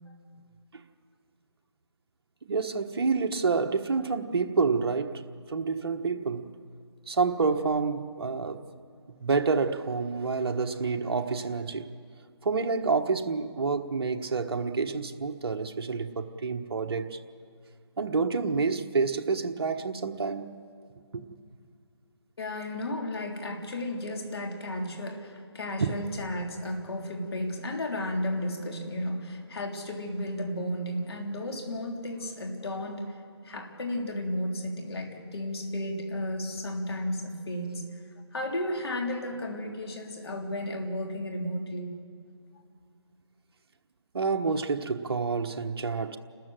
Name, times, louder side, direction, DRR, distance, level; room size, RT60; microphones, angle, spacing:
voice 1, 2.5-5.2 5.5-6.5 7.1-8.6 9.1-11.9 12.4-17.2 18.0-20.5 21.1-21.2 25.8-26.0 44.1-46.2, right 4 dB, 55° right, 1.2 m, -28 dB
voice 2, 22.4-33.1 33.4-37.9 38.3-41.9, left 1 dB, 55° left, 3.3 m, -33 dB
30.0 x 13.5 x 7.7 m
figure-of-eight pair, 160°, 15 cm